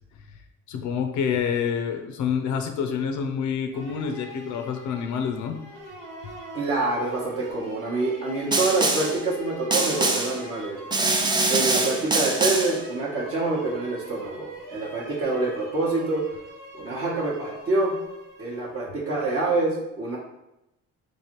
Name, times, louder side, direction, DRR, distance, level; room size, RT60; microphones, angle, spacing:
voice 1, 0.7-5.6, left 7 dB, 75° left, 6 dB, 0.5 m, -27 dB
sound 1, 3.7-18.8, equal, 80° right, 1.0 m, -42 dB
voice 2, 6.5-10.8 11.5-16.2 16.7-17.9 18.4-20.2, right 3 dB, 50° right, -5 dB, 0.8 m, -26 dB
Snare drum, 8.5-9.2 9.7-10.4 10.9-12.8, right 2 dB, 15° right, 0.3 m, -24 dB
3.1 x 2.6 x 2.9 m, 0.88 s
cardioid pair, 90°, 30 cm